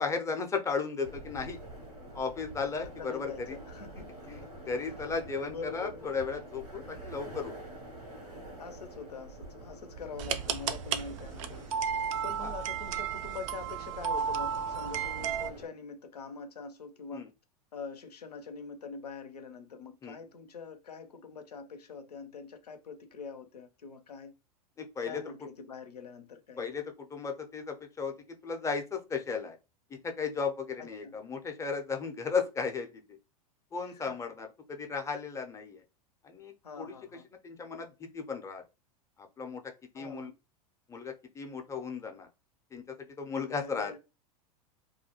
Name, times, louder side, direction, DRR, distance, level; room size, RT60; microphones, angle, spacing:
voice 1, 0.0-1.6 2.1-3.6 4.0-7.5 12.4-12.5 17.1-17.3 20.0-20.2 24.8-25.2 26.6-28.1 28.4-29.6 30.0-32.9 33.7-35.8 36.2-36.9 37.4-38.6 39.4-39.6 39.9-40.3 40.9-42.3 42.7-43.9, left 5 dB, 15° left, 0.5 m, -35 dB
sound 1, 1.0-15.7, right 1 dB, 80° right, 0.9 m, -47 dB
voice 2, 2.8-4.5 5.5-6.1 8.6-11.7 12.2-17.3 17.7-24.3 25.0-26.7 30.8-31.1 33.8-34.2 36.6-37.3 39.9-40.3 43.5-44.0, left 5 dB, 85° left, 0.5 m, -44 dB
sound 2, 10.2-15.5, right 7 dB, 55° right, 0.4 m, -33 dB
2.3 x 2.1 x 2.8 m
hypercardioid pair, 95°, 20 cm